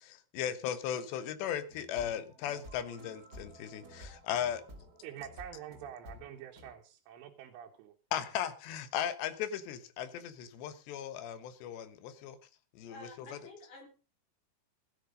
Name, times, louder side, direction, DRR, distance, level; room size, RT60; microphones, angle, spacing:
voice 1, 0.1-4.6 8.1-12.4 12.8-13.4, left 10 dB, 70° left, 11 dB, 3.3 m, -37 dB
sound 1, 1.7-6.7, equal, 25° right, 2.1 m, -52 dB
voice 2, 5.0-7.9, right 10 dB, 85° right, 1 dB, 3.8 m, -47 dB
voice 3, 12.9-13.9, left 2 dB, 40° left, 3 dB, 4.9 m, -50 dB
16.0 x 10.5 x 5.2 m, 0.34 s
omnidirectional pair, 5.5 m